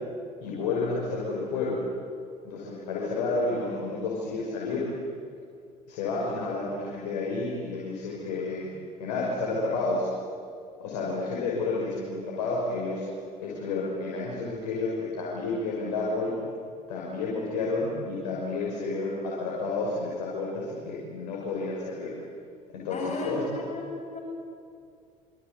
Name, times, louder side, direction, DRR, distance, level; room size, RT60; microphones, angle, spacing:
voice 1, 0.4-1.8 2.4-4.8 5.9-8.7 9.0-10.1 10.8-13.0 13.4-16.3 16.9-22.1 22.7-23.4, left 3 dB, 65° left, -4 dB, 6.1 m, -30 dB
voice 2, 22.9-24.2, left 1 dB, 35° left, 0 dB, 7.5 m, -35 dB
27.0 x 26.5 x 8.4 m, 2.4 s
figure-of-eight pair, 60°, 21 cm